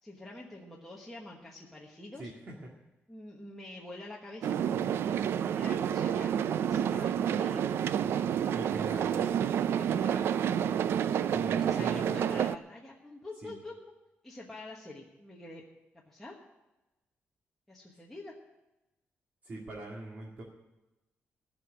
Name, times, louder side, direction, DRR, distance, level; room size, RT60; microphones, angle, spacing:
voice 1, 0.0-2.3 3.1-4.9 5.6-8.0 8.4-8.8 9.8-10.2 11.6-13.9 14.2-15.6 16.1-16.4 17.7-18.3, left 2 dB, 5° left, -3 dB, 1.2 m, -46 dB
voice 2, 2.2-2.5 8.5-9.3 11.3-12.3 13.4-13.5 19.4-20.4, right 2 dB, 40° right, -2 dB, 2.0 m, -42 dB
sound 1, 4.4-12.6, right 9 dB, 70° right, 0.4 m, -29 dB
16.0 x 6.2 x 9.9 m, 1.0 s
wide cardioid pair, 180°, 4 cm